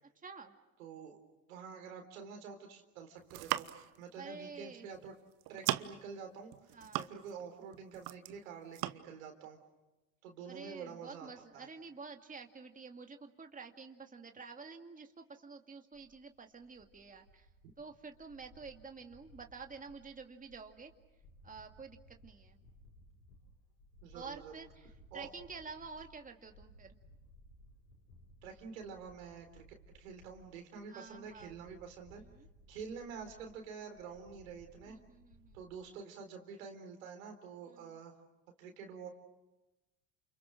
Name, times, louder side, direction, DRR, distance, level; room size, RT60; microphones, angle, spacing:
voice 1, 0.2-0.5 4.2-4.9 6.7-7.0 10.5-17.5 17.8-20.9 21.4-22.6 24.1-24.7 25.1-27.0 30.9-31.6 32.4-32.5 34.9-35.6 37.7-37.8, right 4 dB, 20° right, 4 dB, 2.3 m, -49 dB
voice 2, 0.8-1.2 1.5-3.7 4.0-5.2 5.5-9.6 10.2-11.7 24.0-24.7 25.1-25.3 28.4-29.7 29.9-32.2 32.7-35.0 35.5-38.1 38.6-39.1, right 6 dB, 80° right, 5 dB, 3.9 m, -48 dB
sound 1, 3.2-4.0 4.9-5.1 5.4-6.1 6.5-7.5 7.7-8.4 8.7-8.9, right 15 dB, 60° right, 1.1 m, -37 dB
sound 2, 15.9-35.8, equal, 90° left, 7.3 m, -61 dB
29.5 x 28.0 x 6.4 m, 1.0 s
hypercardioid pair, 70°, 40 cm